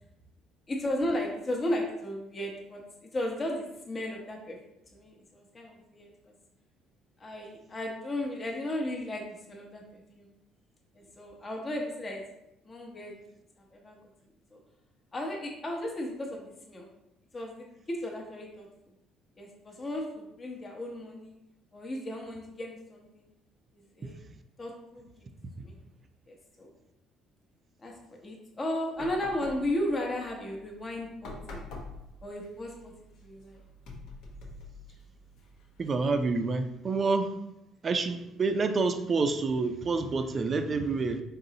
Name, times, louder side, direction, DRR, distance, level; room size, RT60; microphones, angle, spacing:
voice 1, 0.7-2.8 3.1-4.6 4.9-6.1 7.2-10.3 10.9-12.2 12.6-13.1 13.7-14.0 14.5-14.6 15.1-16.9 17.3-18.7 19.4-21.3 21.7-23.3 24.0-24.2 24.6-25.1 25.6-25.8 26.3-26.7 27.8-27.9 28.2-31.7 32.2-33.6, left 1 dB, 30° left, 0 dB, 0.8 m, -35 dB
sound 1, 28.9-36.4, left 2 dB, 75° left, 0.8 m, -47 dB
voice 2, 35.8-37.3 37.8-41.2, right 4 dB, 35° right, 8 dB, 0.4 m, -28 dB
3.9 x 3.9 x 2.8 m, 0.85 s
cardioid pair, 105°, 0 cm